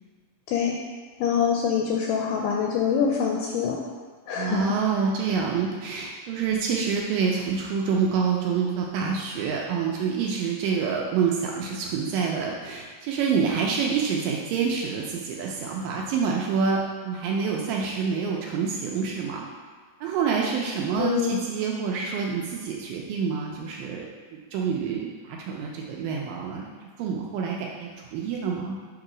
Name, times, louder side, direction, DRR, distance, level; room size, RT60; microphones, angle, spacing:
voice 1, 1.2-3.8 4.3-4.8 21.0-21.4, left 7 dB, 85° left, -1 dB, 1.9 m, -25 dB
voice 2, 4.4-19.4 20.0-24.0 24.3-26.7 27.0-28.8, right 6 dB, 80° right, -1 dB, 2.0 m, -27 dB
7.1 x 2.8 x 4.9 m, 1.5 s
omnidirectional pair, 4.3 m